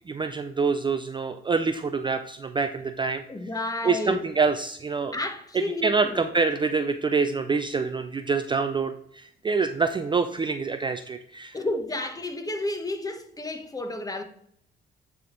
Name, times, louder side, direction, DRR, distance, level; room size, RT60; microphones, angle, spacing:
voice 1, 0.1-3.2 3.8-5.2 5.8-8.9 9.4-11.5, right 4 dB, 25° right, 0.4 m, -26 dB
voice 2, 3.3-4.3 5.1-6.2 11.5-14.2, left 2 dB, 20° left, 1.1 m, -31 dB
9.4 x 3.5 x 3.8 m
cardioid pair, 90°, 20 cm